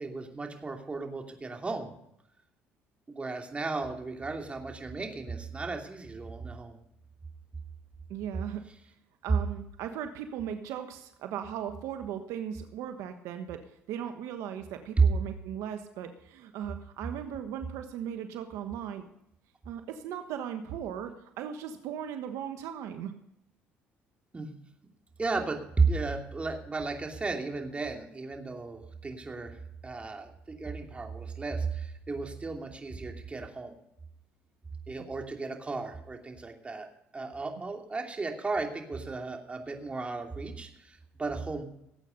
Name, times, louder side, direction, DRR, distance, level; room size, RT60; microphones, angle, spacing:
voice 1, 0.0-1.9 3.1-6.8 24.3-24.5 25.2-30.3 30.6-33.7 34.9-36.9 37.1-41.6, right 4 dB, 25° right, 3 dB, 2.7 m, -34 dB
voice 2, 8.1-8.6 9.2-19.0 19.6-23.1, right 9 dB, 75° right, 7 dB, 1.3 m, -38 dB
18.0 x 8.7 x 5.3 m, 0.78 s
supercardioid pair, 80°, 5 cm